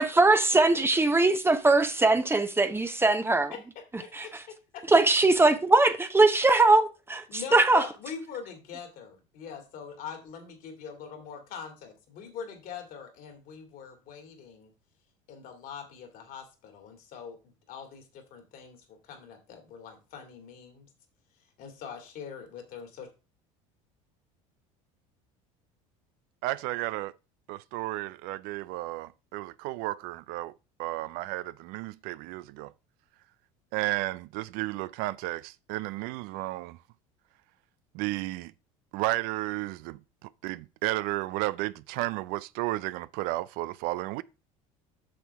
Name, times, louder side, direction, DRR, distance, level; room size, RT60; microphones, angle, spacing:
voice 1, 0.0-3.5 4.2-4.3 4.9-7.2 7.5-7.8, right 2 dB, 15° right, 0.8 m, -21 dB
voice 2, 3.5-4.8 7.3-14.7 15.3-17.4 17.7-20.9 21.6-23.1, left 7 dB, 60° left, 2.4 m, -43 dB
voice 3, 26.4-27.1 27.5-30.5 30.8-32.7 33.7-36.8 37.9-38.5 38.9-44.2, right 18 dB, 65° right, 0.4 m, -33 dB
7.6 x 6.3 x 3.4 m
hypercardioid pair, 85°, 17 cm